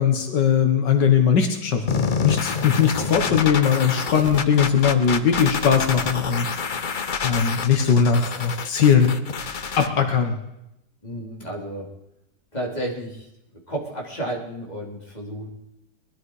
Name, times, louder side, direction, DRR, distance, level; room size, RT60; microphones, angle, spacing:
voice 1, 0.0-6.5 7.2-9.1 9.8-10.4, left 7 dB, 80° left, 5 dB, 1.9 m, -20 dB
sound 1, 1.9-9.9, left 5 dB, 45° left, 0.7 m, -27 dB
voice 2, 11.0-11.9 12.5-13.3 13.7-15.5, right 1 dB, 25° left, -2 dB, 3.8 m, -32 dB
20.5 x 13.0 x 4.8 m, 0.86 s
omnidirectional pair, 1.9 m